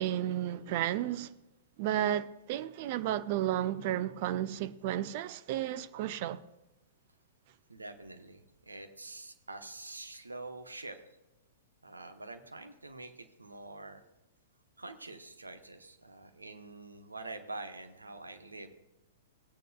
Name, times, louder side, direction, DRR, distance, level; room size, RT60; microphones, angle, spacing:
voice 1, 0.0-1.3 1.8-6.4, right 12 dB, 40° right, 0.5 m, -32 dB
voice 2, 7.7-11.0 11.8-14.0 14.8-18.7, right 2 dB, 80° right, 1.0 m, -46 dB
18.0 x 9.2 x 2.3 m
figure-of-eight pair, 105°, 0 cm